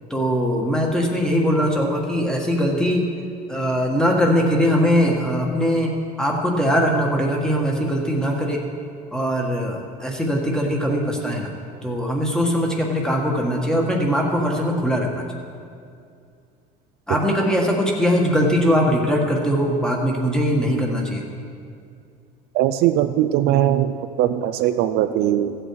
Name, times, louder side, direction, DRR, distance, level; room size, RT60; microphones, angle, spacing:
voice 1, 0.1-3.1 3.5-5.9 6.2-8.6 9.1-11.5 11.8-15.2 17.1-21.2, equal, 5° left, 0 dB, 1.6 m, -21 dB
voice 2, 22.5-25.6, right 12 dB, 60° right, 9 dB, 0.5 m, -20 dB
15.5 x 7.9 x 4.7 m, 2.3 s
cardioid pair, 135°, 18 cm